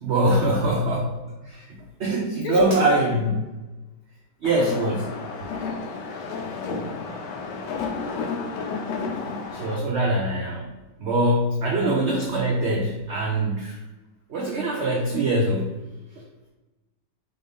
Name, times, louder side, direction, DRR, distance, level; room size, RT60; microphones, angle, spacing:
voice 1, 0.0-1.2 1.5-1.6 2.0-3.1 4.4-5.1 9.6-10.7 11.0-13.8 14.3-15.7 16.2-16.3, right 1 dB, 85° right, -2 dB, 0.6 m, -23 dB
voice 2, 2.4-3.3 7.7-8.1 9.1-9.8 11.6-11.9, left 2 dB, 55° left, -1 dB, 1.1 m, -33 dB
sound 1, 4.4-9.8, left 4 dB, 80° left, 1.3 m, -31 dB
4.3 x 2.6 x 3.4 m, 1.1 s
omnidirectional pair, 1.9 m